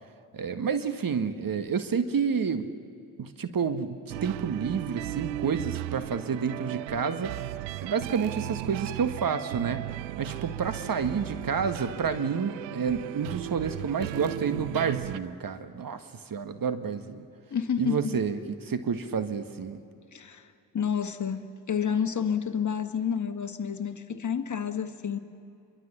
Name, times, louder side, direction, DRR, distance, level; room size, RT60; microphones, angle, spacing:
voice 1, 0.3-2.7 3.2-7.4 7.8-9.9 10.2-17.3 17.8-19.8, right 6 dB, 40° right, 10 dB, 1.7 m, -29 dB
sound 1, 4.1-15.2, right 17 dB, 90° right, 0.6 m, -36 dB
voice 2, 17.5-18.2 20.1-20.5 20.7-25.2, left 7 dB, 35° left, 9 dB, 1.6 m, -29 dB
27.5 x 23.0 x 6.9 m, 2.5 s
hypercardioid pair, 45°, 50 cm